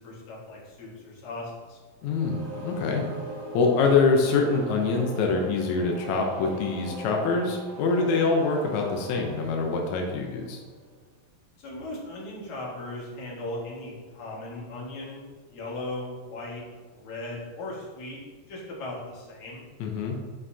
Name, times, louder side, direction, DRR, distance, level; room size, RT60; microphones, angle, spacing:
voice 1, 0.0-1.8 11.6-16.6 16.9-18.2 18.5-19.6, left 2 dB, 55° left, -4 dB, 2.7 m, -38 dB
voice 2, 2.0-3.0 3.5-10.6 19.8-20.2, left 4 dB, 80° left, 1 dB, 1.7 m, -25 dB
sound 1, 2.0-10.9, right 1 dB, 70° right, 2.8 m, -40 dB
9.5 x 5.4 x 2.8 m, 1.5 s
omnidirectional pair, 4.3 m